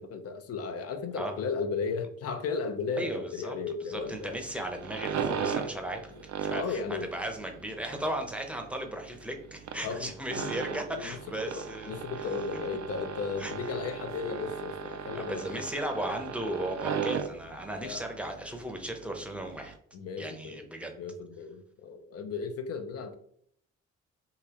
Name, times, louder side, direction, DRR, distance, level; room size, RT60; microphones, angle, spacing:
voice 1, 0.0-4.4 6.1-7.1 9.8-15.6 17.8-18.1 19.9-20.6 21.0-23.1, left 5 dB, 55° left, 8 dB, 0.6 m, -35 dB
voice 2, 2.9-3.6 3.9-6.0 6.4-12.0 13.4-13.5 15.1-19.7 20.2-20.9, right 1 dB, 5° right, 4 dB, 0.7 m, -36 dB
sound 1, 3.9-19.8, right 7 dB, 60° right, 0.5 m, -37 dB
3.9 x 2.7 x 2.9 m, 0.66 s
cardioid pair, 90°, 30 cm